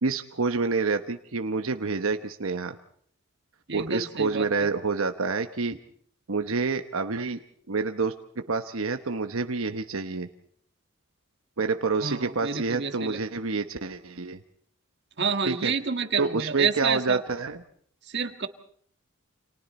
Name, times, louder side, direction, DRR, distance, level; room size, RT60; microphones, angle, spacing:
voice 1, 0.0-2.8 3.7-5.7 6.3-7.4 7.7-10.3 11.6-14.4 15.5-15.7 16.2-17.6, right 4 dB, 75° right, 6 dB, 1.0 m, -28 dB
voice 2, 3.7-4.7 12.0-13.2 15.2-17.2 18.0-18.5, right 5 dB, 55° right, 7 dB, 1.7 m, -29 dB
29.5 x 27.0 x 4.2 m, 0.63 s
head